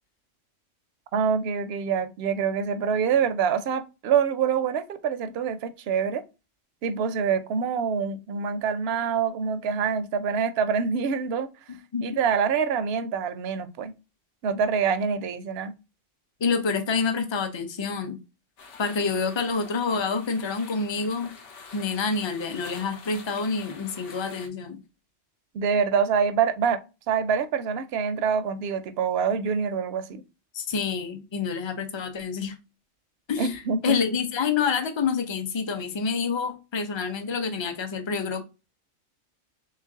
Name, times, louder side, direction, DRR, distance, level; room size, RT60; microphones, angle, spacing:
voice 1, 1.1-6.2 6.8-11.5 12.0-13.9 14.4-15.7 25.5-26.8 27.1-30.2 33.4-34.0, right 6 dB, 65° right, 0.7 m, -25 dB
voice 2, 16.4-18.2 18.8-21.3 21.7-24.8 30.5-32.5 33.3-38.4, left 5 dB, 35° left, 0.5 m, -27 dB
sound 1, 18.6-24.5, left 5 dB, 70° left, 1.2 m, -46 dB
3.3 x 3.2 x 3.5 m
omnidirectional pair, 1.3 m